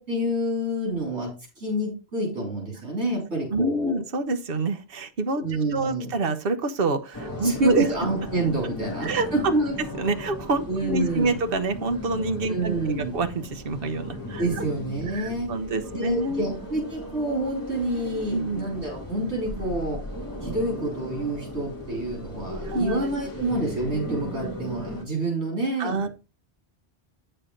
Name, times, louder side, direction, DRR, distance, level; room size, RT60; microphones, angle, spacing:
voice 1, 0.0-4.0 5.4-6.1 7.4-9.8 10.7-11.3 12.5-13.1 14.4-20.0 20.4-26.1, right 1 dB, 85° right, -1 dB, 3.8 m, -28 dB
voice 2, 3.5-5.4 5.7-7.9 9.0-9.5 10.0-14.6 15.1-16.5 18.3-18.6 22.6-23.1 25.8-26.1, right 2 dB, 60° right, 8 dB, 1.1 m, -26 dB
sound 1, 7.1-25.0, left 1 dB, 20° left, 2.3 m, -36 dB
8.8 x 6.7 x 3.8 m, 0.31 s
omnidirectional pair, 1.1 m